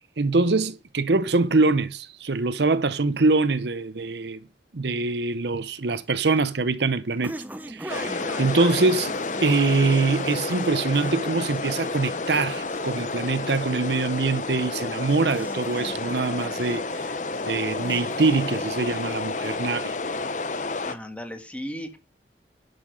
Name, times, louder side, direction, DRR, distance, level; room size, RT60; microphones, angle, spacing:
voice 1, 0.2-4.4 4.7-7.4 7.7-9.1 9.4-17.1 17.4-19.9, right 3 dB, 70° right, 0.8 m, -24 dB
sound 1, 5.9-19.5, right 1 dB, 10° right, 0.8 m, -42 dB
sound 2, 7.9-20.9, left 3 dB, 40° left, 0.9 m, -30 dB
voice 2, 20.8-22.0, equal, 5° left, 1.6 m, -36 dB
11.0 x 6.9 x 5.3 m
head